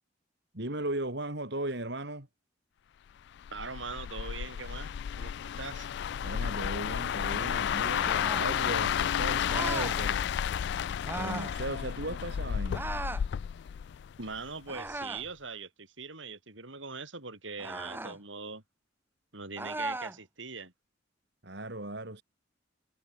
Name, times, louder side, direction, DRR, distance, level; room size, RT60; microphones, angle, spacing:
voice 1, 0.5-2.3 6.2-10.3 11.1-12.8 21.4-22.2, right 1 dB, 60° right, 4.4 m, -37 dB
sound 1, 3.4-14.5 14.9-15.2, left 8 dB, 65° left, 0.3 m, -32 dB
voice 2, 3.5-5.9 14.2-18.6 19.3-20.7, right 4 dB, 85° right, 7.0 m, -41 dB
sound 2, 7.9-8.5 9.5-10.0 11.0-11.5 12.7-13.3 14.7-15.3 17.6-18.2 19.6-20.2, right 2 dB, 10° right, 3.7 m, -37 dB
head